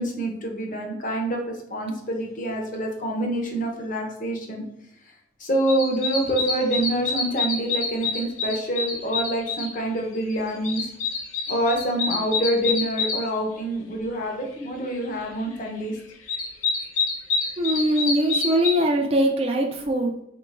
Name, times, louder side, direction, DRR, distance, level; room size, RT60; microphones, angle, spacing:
voice 1, 0.0-4.6 5.0-10.9 11.5-16.0, right 1 dB, 40° left, 1 dB, 0.8 m, -26 dB
sound 1, 5.7-9.7 10.1-13.2 15.6-15.7 16.1-18.7, left 4 dB, 90° left, 0.8 m, -27 dB
voice 2, 17.6-20.2, equal, 30° right, 2 dB, 0.4 m, -22 dB
4.7 x 3.7 x 2.5 m, 0.77 s
head